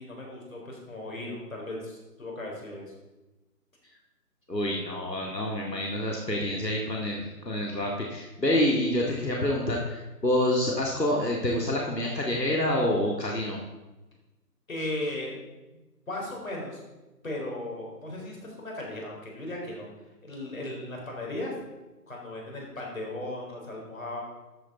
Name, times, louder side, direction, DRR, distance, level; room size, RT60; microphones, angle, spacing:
voice 1, 0.0-2.9 14.7-15.3 16.1-16.8 17.2-19.9 20.2-21.5 22.1-24.2, left 1 dB, 55° left, -1 dB, 4.2 m, -36 dB
voice 2, 4.5-13.6, left 1 dB, 85° left, -2 dB, 2.1 m, -27 dB
13.5 x 8.4 x 4.0 m, 1.1 s
figure-of-eight pair, 155°, 48 cm